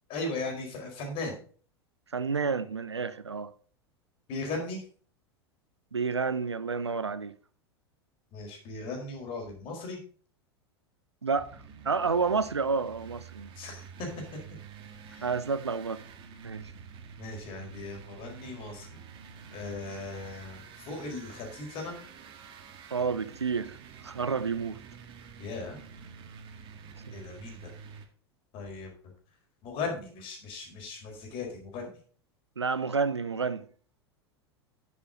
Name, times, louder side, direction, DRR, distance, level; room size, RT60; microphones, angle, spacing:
voice 1, 0.1-1.4 4.3-4.8 8.3-10.0 13.6-14.1 15.1-15.3 17.2-19.0 19.5-22.0 25.4-25.8 27.1-27.7 28.5-28.9 29.6-31.9, left 3 dB, 40° left, 4.7 m, -37 dB
voice 2, 2.1-3.5 5.9-7.4 11.2-11.5 11.8-13.5 15.2-16.0 16.4-16.7 22.9-23.8 24.0-24.8 32.6-33.7, right 5 dB, 80° right, 0.7 m, -30 dB
sound 1, 11.4-28.1, right 6 dB, 35° right, 1.8 m, -48 dB
11.0 x 7.1 x 4.0 m
figure-of-eight pair, 85°, 14 cm